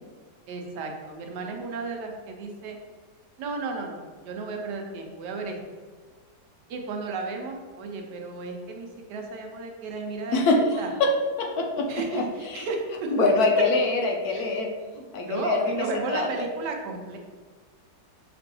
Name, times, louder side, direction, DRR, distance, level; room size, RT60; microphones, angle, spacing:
voice 1, 0.5-2.8 3.4-5.6 6.7-10.4 10.8-10.9 11.9-13.3 14.3-14.5 15.2-17.2, right 3 dB, 80° right, 2 dB, 1.3 m, -33 dB
voice 2, 10.3-11.1 11.4-12.6 13.1-15.6 15.9-16.3, left 3 dB, 70° left, 2 dB, 1.1 m, -24 dB
5.9 x 3.0 x 2.9 m, 1.5 s
omnidirectional pair, 1.8 m